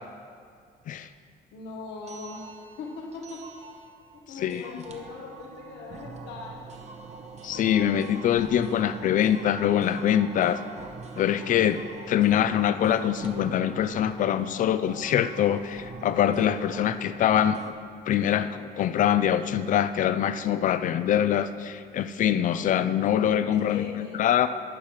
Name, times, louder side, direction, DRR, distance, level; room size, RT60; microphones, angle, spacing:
voice 1, 1.5-3.5 4.3-6.7 23.5-24.2, left 4 dB, 80° left, 0 dB, 1.3 m, -40 dB
sound 1, 2.0-17.7, right 4 dB, 40° right, 0.8 m, -44 dB
voice 2, 4.4-4.8 7.4-10.6 11.2-11.8 12.1-17.7 18.1-24.5, left 10 dB, 50° left, 12 dB, 0.4 m, -24 dB
10.5 x 5.7 x 4.8 m, 2.2 s
cardioid pair, 130°, 18 cm